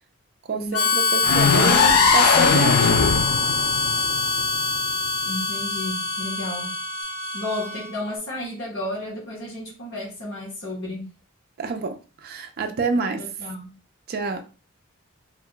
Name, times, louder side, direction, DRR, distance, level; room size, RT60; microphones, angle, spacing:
voice 1, 0.5-3.1 11.6-12.0 12.2-13.2 14.1-14.4, right 4 dB, 45° right, 0.4 m, -27 dB
Harmonica, 0.7-8.0, left 3 dB, 70° left, 1.1 m, -24 dB
sound 1, 1.2-5.1, left 6 dB, 90° left, 0.3 m, -20 dB
voice 2, 5.3-6.8 7.3-11.1 13.2-13.7, left 1 dB, 55° left, 0.9 m, -32 dB
2.3 x 2.1 x 3.6 m
head